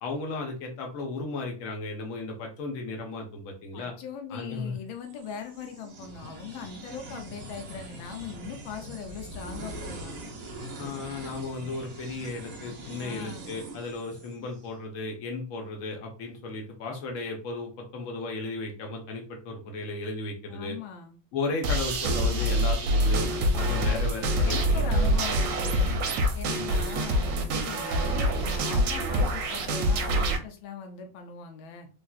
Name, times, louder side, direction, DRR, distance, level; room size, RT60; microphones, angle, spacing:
voice 1, 0.0-3.9 4.3-4.7 10.8-20.8 21.3-26.1 26.5-26.6, left 3 dB, 60° left, 2 dB, 0.9 m, -35 dB
voice 2, 3.7-10.2 13.0-13.5 20.5-21.2 24.4-26.0 26.3-31.9, left 7 dB, 90° left, 5 dB, 1.4 m, -40 dB
sound 1, 5.0-14.7, right 1 dB, 60° right, 1.0 m, -42 dB
sound 2, 21.6-30.4, equal, 75° right, 1.2 m, -25 dB
3.6 x 2.4 x 2.3 m, 0.36 s
omnidirectional pair, 2.1 m